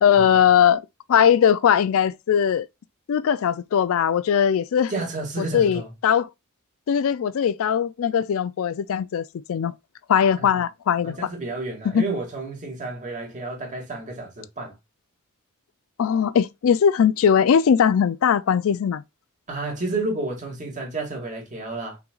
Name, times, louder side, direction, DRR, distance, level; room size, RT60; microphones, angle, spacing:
voice 1, 0.0-2.7 3.1-4.9 5.4-6.3 6.9-9.7 10.1-11.2 11.8-12.0 16.0-19.0, left 8 dB, 70° left, 0.4 m, -20 dB
voice 2, 4.9-5.9 10.4-10.5 11.0-14.8 19.5-22.0, right 2 dB, 35° right, 2.1 m, -31 dB
5.7 x 3.9 x 2.3 m
head